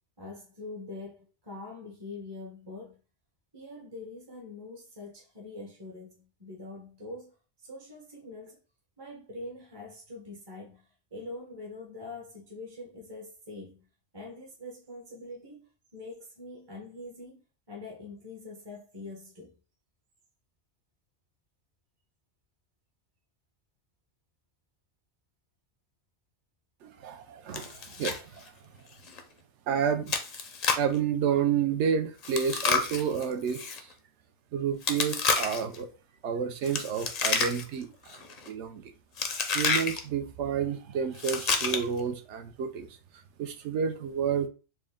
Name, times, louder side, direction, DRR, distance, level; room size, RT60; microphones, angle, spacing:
voice 1, 0.2-3.0 3.5-8.6 9.0-13.9 14.1-15.7 15.9-17.4 17.7-19.5, left 2 dB, 25° right, 0.6 m, -44 dB
voice 2, 26.8-28.5 29.7-30.2 30.8-33.9 34.5-35.9 36.2-38.9 39.5-42.9 43.4-44.5, right 7 dB, 70° right, 0.9 m, -30 dB
Chewing mastication, 27.5-28.2 28.5-28.6 29.1-29.2 30.1-30.9 32.2-33.8 34.8-35.8 36.6-37.8 38.1-38.5 39.2-40.0 41.1-42.0, left 5 dB, 55° left, 0.4 m, -29 dB
4.5 x 2.1 x 3.5 m
omnidirectional pair, 1.3 m